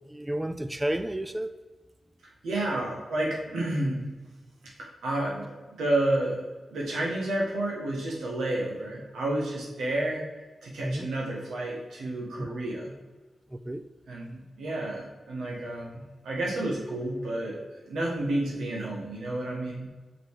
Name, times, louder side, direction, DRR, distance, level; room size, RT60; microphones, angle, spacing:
voice 1, 0.1-1.5 10.8-11.1 12.4-12.5 13.5-13.8, right 1 dB, 15° right, 10 dB, 0.4 m, -31 dB
voice 2, 2.4-4.0 4.8-10.2 10.6-12.9 14.1-17.6 17.9-19.9, right 1 dB, 90° right, -2 dB, 1.9 m, -30 dB
5.9 x 5.4 x 5.0 m, 1.3 s
cardioid pair, 45°, 0 cm